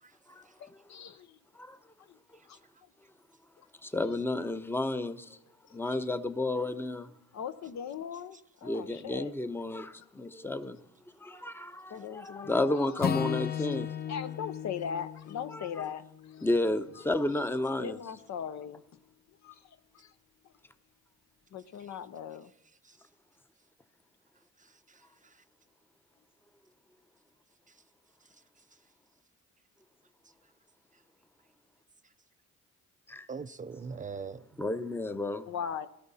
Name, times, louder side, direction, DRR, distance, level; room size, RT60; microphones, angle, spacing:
voice 1, 0.6-1.4 2.0-2.2 2.5-2.9 5.9-6.0 7.3-9.3 11.9-13.1 13.6-13.7 14.1-16.5 17.8-19.0 19.4-20.1 21.5-22.5 35.5-35.9, left 8 dB, 65° left, 0.8 m, -40 dB
voice 2, 3.8-5.4 5.7-7.1 8.6-10.8 11.2-13.9 15.5-15.8 16.4-18.0 33.1-33.3 34.6-35.5, left 2 dB, 5° left, 0.7 m, -32 dB
Acoustic guitar / Strum, 13.0-17.3, left 9 dB, 30° left, 0.5 m, -36 dB
voice 3, 24.6-25.4 33.3-34.4, right 5 dB, 25° right, 0.4 m, -42 dB
18.0 x 13.0 x 4.2 m
cardioid pair, 90°, 30 cm